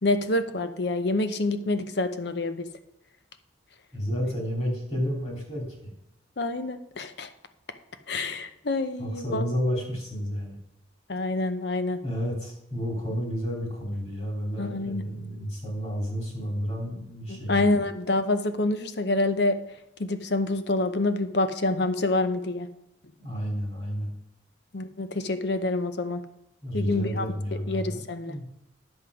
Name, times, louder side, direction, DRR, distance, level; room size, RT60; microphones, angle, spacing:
voice 1, 0.0-2.7 6.4-7.3 8.1-9.4 11.1-12.0 14.6-15.0 17.3-19.6 20.0-22.7 24.7-26.2 26.7-27.3 27.7-28.3, left 2 dB, 60° left, 10 dB, 0.7 m, -27 dB
voice 2, 3.9-5.6 9.0-10.5 12.0-17.8 23.2-24.1 26.6-28.0 28.3-28.4, equal, 35° left, -1 dB, 3.1 m, -31 dB
9.7 x 7.8 x 5.0 m, 0.84 s
head